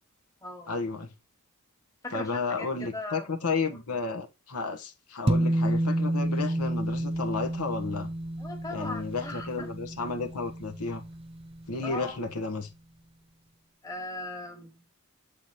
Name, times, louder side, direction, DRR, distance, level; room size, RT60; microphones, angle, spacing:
voice 1, 0.7-1.1 2.1-8.1 8.7-11.0 11.7-12.7, left 4 dB, 90° left, 1.1 m, -32 dB
voice 2, 2.0-3.2 3.7-3.8 8.4-9.7 11.8-12.2 13.8-14.9, left 2 dB, 15° left, 1.5 m, -39 dB
sound 1, 5.3-11.9, right 1 dB, 25° right, 0.7 m, -30 dB
8.1 x 3.8 x 4.1 m
head